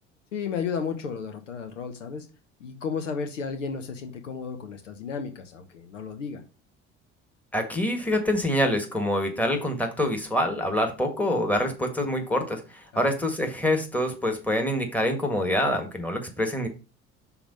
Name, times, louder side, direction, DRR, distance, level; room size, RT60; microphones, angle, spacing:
voice 1, 0.3-2.3 2.6-6.4 12.9-13.1, left 6 dB, 75° left, 7 dB, 0.9 m, -33 dB
voice 2, 7.5-16.7, left 1 dB, 5° left, 3 dB, 1.7 m, -26 dB
6.0 x 3.9 x 5.3 m, 0.32 s
figure-of-eight pair, 60°, 37 cm